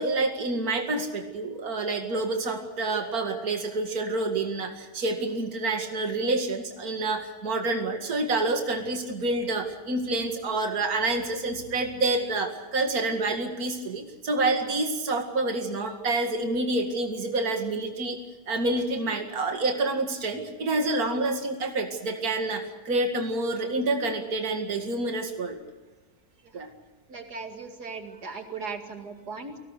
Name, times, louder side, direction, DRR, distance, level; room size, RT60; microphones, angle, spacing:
voice 1, 0.0-18.2 18.5-25.6 26.5-26.7, right 2 dB, 65° right, 4 dB, 2.6 m, -28 dB
voice 2, 27.1-29.6, right 4 dB, 85° right, 4 dB, 2.8 m, -38 dB
29.5 x 19.5 x 6.6 m, 1.2 s
omnidirectional pair, 1.7 m